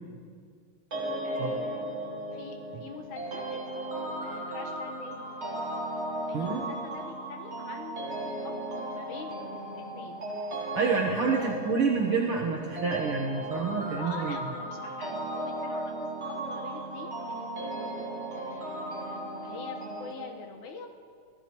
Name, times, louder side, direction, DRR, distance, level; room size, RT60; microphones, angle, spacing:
sound 1, 0.9-20.1, right 1 dB, 35° right, 1.2 m, -36 dB
voice 1, 1.2-1.9 2.3-5.7 6.3-8.6 8.9-9.4 9.8-10.2 11.4-11.6 14.0-20.9, left 4 dB, 75° left, 2 dB, 2.6 m, -44 dB
voice 2, 10.7-14.4, right 5 dB, 65° right, -1 dB, 1.4 m, -28 dB
24.0 x 15.5 x 2.9 m, 2.1 s
omnidirectional pair, 3.5 m